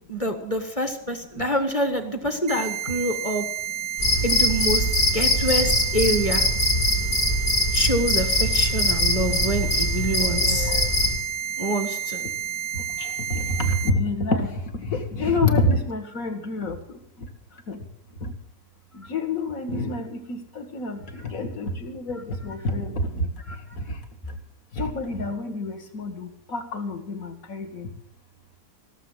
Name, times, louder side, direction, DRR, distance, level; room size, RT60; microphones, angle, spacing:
voice 1, 0.1-3.4 4.2-6.5 7.7-10.8 11.6-12.3 23.5-23.6, right 1 dB, 20° left, 7 dB, 1.5 m, -26 dB
sound 1, 2.5-13.9, right 9 dB, 55° right, 0.8 m, -31 dB
Cricket, 4.0-11.2, left 1 dB, 75° left, 4.0 m, -22 dB
voice 2, 10.4-10.9 12.7-16.8 17.7-17.8 18.2-18.3 18.9-23.3 24.8-27.9, left 2 dB, 55° left, 6 dB, 2.1 m, -27 dB
17.0 x 7.2 x 9.2 m, 0.76 s
omnidirectional pair, 1.8 m